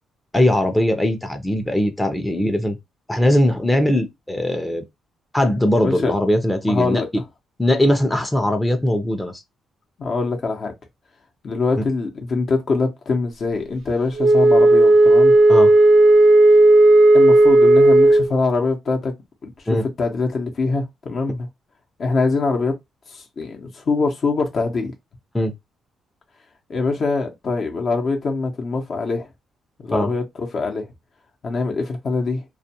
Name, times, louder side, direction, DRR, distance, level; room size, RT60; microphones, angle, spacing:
voice 1, 0.3-2.8 3.1-4.8 5.3-7.2 7.6-9.4 15.5-15.7 19.7-19.8 25.3-25.5 29.9-30.1, left 1 dB, 10° left, 0.6 m, -20 dB
voice 2, 5.8-6.1 6.7-7.1 10.0-10.7 11.4-15.3 17.1-19.1 19.4-21.5 22.0-22.7 23.1-24.9 26.7-29.3 29.8-30.9 31.4-32.4, left 3 dB, 50° left, 0.8 m, -23 dB
Wind instrument woodwind instrument, 14.2-18.3, right 2 dB, 70° right, 0.4 m, -12 dB
2.3 x 2.2 x 2.8 m
cardioid pair, 90°, 0 cm